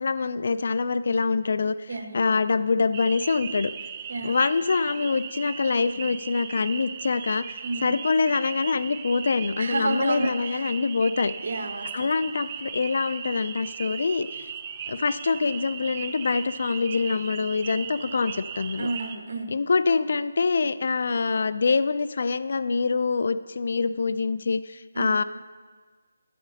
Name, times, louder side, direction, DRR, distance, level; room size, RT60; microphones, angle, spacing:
voice 1, 0.0-3.7 4.2-11.3 11.9-14.5 14.9-18.9 19.5-25.2, left 4 dB, 60° left, 14 dB, 0.4 m, -25 dB
voice 2, 1.9-2.2 4.1-4.3 7.6-8.0 9.6-10.6 11.4-12.1 18.8-19.5 24.9-25.2, right 2 dB, 60° right, 6 dB, 1.2 m, -30 dB
sound 1, 2.9-19.2, right 8 dB, 30° right, 0.4 m, -38 dB
7.8 x 7.2 x 6.3 m, 1.5 s
figure-of-eight pair, 165°, 0 cm